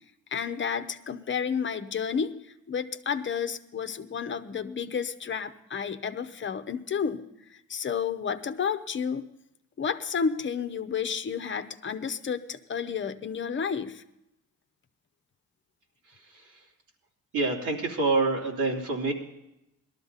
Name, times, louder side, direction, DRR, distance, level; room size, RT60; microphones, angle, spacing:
voice 1, 0.3-2.4 2.7-7.2 7.7-9.3 9.8-14.0, left 6 dB, 40° left, 10 dB, 0.8 m, -31 dB
voice 2, 16.0-16.7 17.3-19.1, right 3 dB, 85° right, -1 dB, 2.9 m, -27 dB
18.5 x 12.5 x 4.0 m, 0.85 s
cardioid pair, 90°, 30 cm